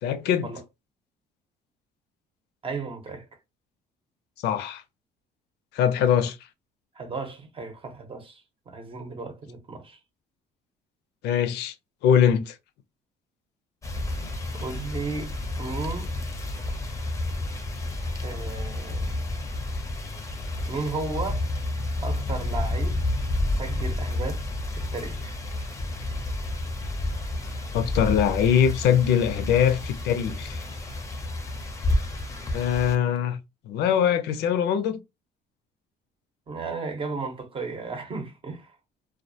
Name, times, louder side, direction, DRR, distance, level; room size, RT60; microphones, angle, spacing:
voice 1, 0.0-0.5 4.4-4.8 5.7-6.4 11.2-11.7 12.0-12.6 14.2-14.3 27.7-30.6 32.5-33.4 33.7-35.0, left 9 dB, 80° left, 0.5 m, -22 dB
voice 2, 2.6-3.3 6.9-10.0 14.5-16.1 18.2-19.2 20.7-21.5 22.0-23.0 23.6-24.5 24.8-25.4 36.5-38.7, right 3 dB, 30° right, 0.7 m, -34 dB
sound 1, 13.8-33.0, left 2 dB, 20° left, 0.6 m, -30 dB
2.3 x 2.1 x 2.6 m
cardioid pair, 110°, 17 cm